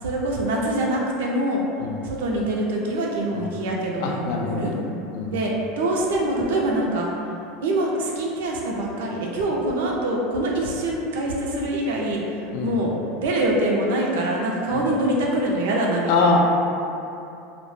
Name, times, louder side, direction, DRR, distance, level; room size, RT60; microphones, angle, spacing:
voice 1, 0.0-1.6 2.0-4.7 5.3-7.1 7.6-12.9 13.2-16.4, right 1 dB, 80° right, -2 dB, 0.4 m, -24 dB
voice 2, 4.0-5.4 12.5-12.8 14.7-14.8 16.1-16.4, left 4 dB, 70° left, 0 dB, 0.3 m, -24 dB
2.0 x 2.0 x 3.1 m, 2.7 s
hypercardioid pair, 100°, 0 cm